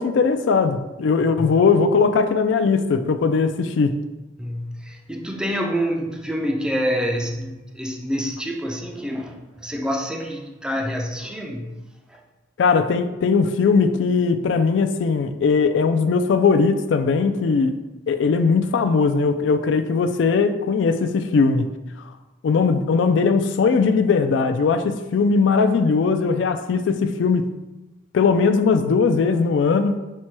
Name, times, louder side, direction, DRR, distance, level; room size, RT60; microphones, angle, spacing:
voice 1, 0.0-4.0 12.6-17.8 18.1-21.7 22.4-27.5 28.1-30.0, left 5 dB, 85° left, 0.3 m, -19 dB
voice 2, 4.4-11.7 12.1-12.2, equal, 5° right, 0.3 m, -27 dB
4.3 x 2.2 x 4.5 m
head